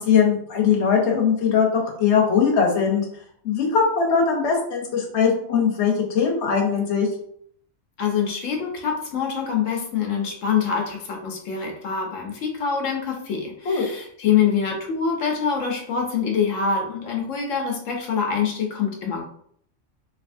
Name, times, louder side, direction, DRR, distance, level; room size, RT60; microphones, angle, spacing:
voice 1, 0.1-1.7 2.0-3.0 3.4-7.1 13.7-13.8, left 6 dB, 65° left, 0 dB, 1.1 m, -20 dB
voice 2, 8.0-19.2, left 6 dB, 80° left, 1 dB, 1.1 m, -25 dB
3.4 x 2.8 x 2.5 m, 0.65 s
omnidirectional pair, 1.3 m